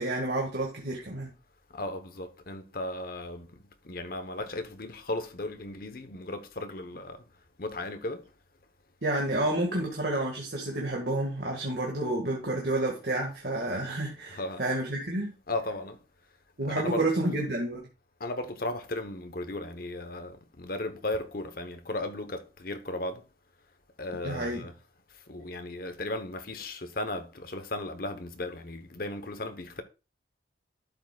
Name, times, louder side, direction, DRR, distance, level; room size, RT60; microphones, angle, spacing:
voice 1, 0.0-1.3 9.0-15.3 16.6-17.9 24.2-24.7, right 2 dB, 55° right, 1.8 m, -30 dB
voice 2, 1.7-3.5 3.8-7.2 7.6-8.3 14.3-14.6 15.5-16.0 16.6-17.1 18.2-23.2 24.0-24.7 25.3-29.8, left 2 dB, 50° left, 0.9 m, -36 dB
12.0 x 7.4 x 2.3 m
head